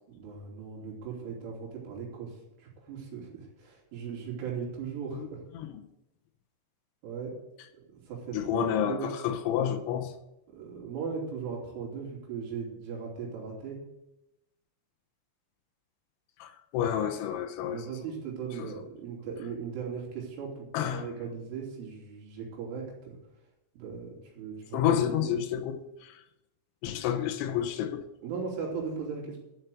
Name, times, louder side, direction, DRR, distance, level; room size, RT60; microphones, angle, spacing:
voice 1, 0.1-5.4 7.0-7.3 7.7-9.1 10.5-13.8 17.6-23.2 23.7-25.4 28.2-29.4, right 6 dB, 85° right, 5.7 m, -38 dB
voice 2, 8.3-10.1 16.4-17.9 18.6-18.7 20.7-21.1 24.7-26.2 26.8-28.0, left 10 dB, 85° left, 3.3 m, -30 dB
12.5 x 6.7 x 7.8 m
omnidirectional pair, 5.5 m